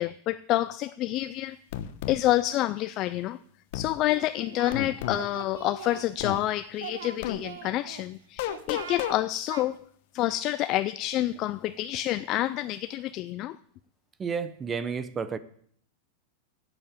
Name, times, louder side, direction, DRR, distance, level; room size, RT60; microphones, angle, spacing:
voice 1, 0.0-1.6 2.1-3.4 3.7-9.8 10.1-13.6, left 15 dB, 40° left, 14 dB, 0.4 m, -28 dB
sound 1, 1.7-2.2 3.7-3.9 4.7-5.2 6.2-6.4 7.2-7.4 8.4-9.2, left 11 dB, 60° left, 0.9 m, -32 dB
Singing, 4.1-4.8 5.1-6.5 6.8-8.0 8.5-9.2 9.5-9.7, right 9 dB, 90° right, 1.1 m, -41 dB
voice 2, 14.2-15.4, right 6 dB, 20° right, 14 dB, 0.7 m, -31 dB
8.8 x 8.0 x 8.6 m, 0.62 s
supercardioid pair, 145°, 0 cm